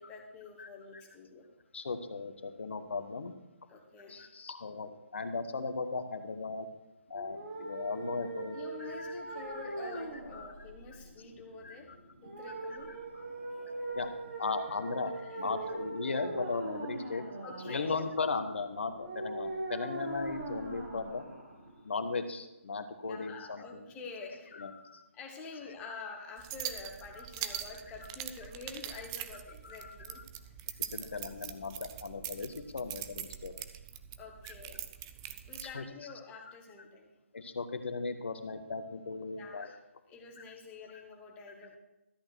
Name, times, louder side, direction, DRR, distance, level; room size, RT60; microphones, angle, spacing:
voice 1, 0.0-1.5 3.7-4.3 8.5-11.9 12.2-13.0 15.1-15.5 17.4-17.9 23.0-24.5 25.1-31.1 34.2-34.8 35.5-37.1 39.4-39.8 40.1-41.8, left 4 dB, 15° left, 1 dB, 1.6 m, -47 dB
voice 2, 1.7-3.3 4.1-6.7 7.1-8.6 9.0-9.2 9.5-9.6 9.9-10.0 10.3-10.5 11.6-11.8 13.1-13.2 13.9-14.1 14.4-17.2 17.6-21.2 21.8-23.9 24.5-25.0 27.2-27.3 27.5-27.6 29.6-30.2 30.8-33.5 34.4-34.5 35.6-35.8 37.3-39.7, left 4 dB, 55° left, 8 dB, 1.3 m, -37 dB
sound 1, 7.1-22.1, right 2 dB, 50° right, 2.6 m, -41 dB
sound 2, 26.4-35.7, right 11 dB, 20° right, 0.5 m, -43 dB
13.5 x 8.7 x 4.6 m, 0.94 s
figure-of-eight pair, 145°, 7 cm